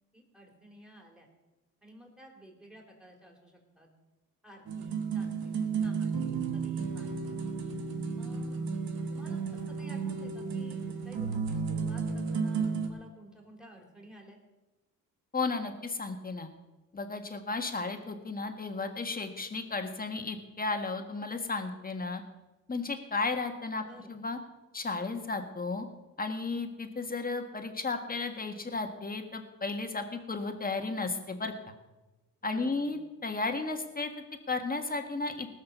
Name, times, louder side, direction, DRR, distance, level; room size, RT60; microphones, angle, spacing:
voice 1, 0.1-1.3 1.8-3.9 4.4-7.3 8.2-8.6 9.1-9.4 9.8-14.4 23.8-24.1 32.4-32.9, right 1 dB, ahead, 1 dB, 3.3 m, -53 dB
sound 1, 4.7-12.9, right 5 dB, 80° right, 1.4 m, -33 dB
voice 2, 15.3-16.5 16.9-22.2 22.7-24.4 24.7-25.8 26.2-31.5 32.4-34.1 34.5-35.5, left 3 dB, 25° left, 5 dB, 1.6 m, -34 dB
19.0 x 6.4 x 6.1 m, 1.1 s
cardioid pair, 90°, 35 cm